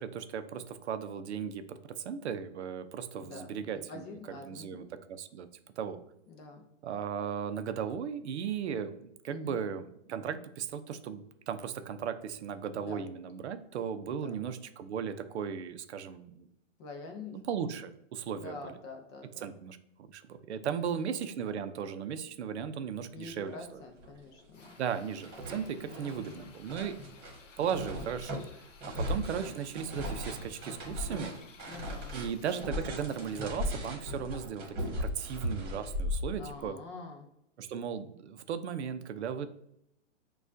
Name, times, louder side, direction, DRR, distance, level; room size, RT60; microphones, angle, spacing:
voice 1, 0.0-5.5 5.8-6.0 6.8-16.5 17.3-18.7 19.4-19.8 20.1-23.8 24.8-27.0 27.6-28.4 28.9-31.3 32.1-36.8 37.6-39.5, right 7 dB, 65° right, 10 dB, 0.6 m, -36 dB
voice 2, 3.2-4.9 6.3-6.6 9.3-9.6 12.8-13.1 14.1-14.3 16.8-17.4 18.3-19.5 20.6-21.1 23.1-24.8 25.9-26.5 28.9-29.2 31.6-32.2 36.3-37.3, left 4 dB, 25° left, 3 dB, 0.4 m, -46 dB
sound 1, 23.6-23.7 24.0-24.8 25.0-36.7, left 1 dB, 25° right, 1.5 m, -37 dB
Drill, 24.5-33.8, left 5 dB, 80° left, 0.8 m, -57 dB
6.2 x 2.4 x 2.6 m, 0.76 s
hypercardioid pair, 130°, 37 cm